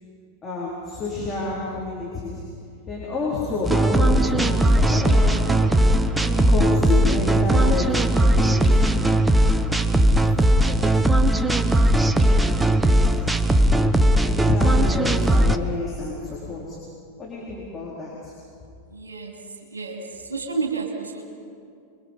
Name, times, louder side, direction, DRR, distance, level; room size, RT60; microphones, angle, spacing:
voice 1, 0.4-2.5 2.9-5.8 6.2-8.7 9.4-11.6 12.1-12.6 12.9-13.3 13.7-16.8 17.2-18.3, left 2 dB, 20° left, -6 dB, 4.3 m, -30 dB
sound 1, 3.6-15.6, right 1 dB, 10° right, 0.9 m, -18 dB
voice 2, 18.9-19.4 19.7-21.2, right 4 dB, 75° right, 2 dB, 2.8 m, -30 dB
27.0 x 22.5 x 5.5 m, 2.4 s
figure-of-eight pair, 90°, 0 cm